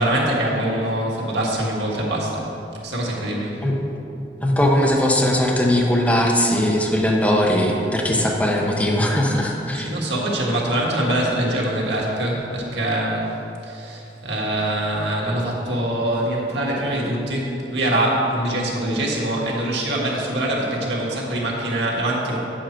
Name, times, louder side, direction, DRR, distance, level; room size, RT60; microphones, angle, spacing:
voice 1, 0.0-2.4 2.8-3.5 9.8-13.3 13.6-22.4, right 1 dB, 90° right, -3 dB, 1.7 m, -23 dB
voice 2, 4.4-9.9, left 1 dB, 10° left, -2 dB, 0.8 m, -19 dB
9.1 x 7.5 x 4.4 m, 2.8 s
head